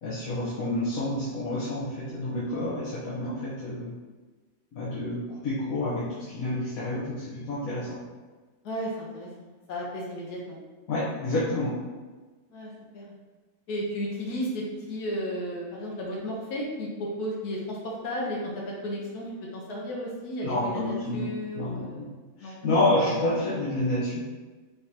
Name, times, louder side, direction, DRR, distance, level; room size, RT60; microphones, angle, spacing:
voice 1, 0.0-3.9 4.7-8.0 10.9-11.7 20.4-21.3 21.5-22.1 22.4-24.2, left 1 dB, 65° left, -8 dB, 1.3 m, -29 dB
voice 2, 8.6-10.6 12.5-13.1 13.7-22.1 22.4-22.6, equal, 85° left, -3 dB, 1.4 m, -34 dB
4.6 x 3.7 x 2.8 m, 1.3 s
omnidirectional pair, 1.6 m